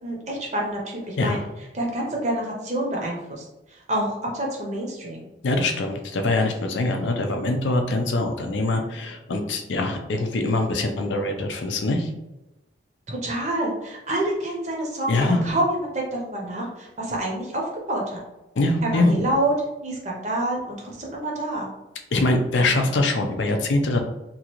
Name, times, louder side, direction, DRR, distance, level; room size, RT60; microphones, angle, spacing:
voice 1, 0.0-1.4 1.7-3.4 3.7-5.3 8.6-8.9 13.1-18.2 18.8-19.5 19.8-21.7, right 1 dB, 40° right, -1 dB, 0.6 m, -27 dB
voice 2, 5.4-12.1 15.1-15.4 18.6-19.1 22.1-24.0, left 2 dB, 80° left, 4 dB, 0.5 m, -23 dB
2.9 x 2.4 x 3.0 m, 0.99 s
head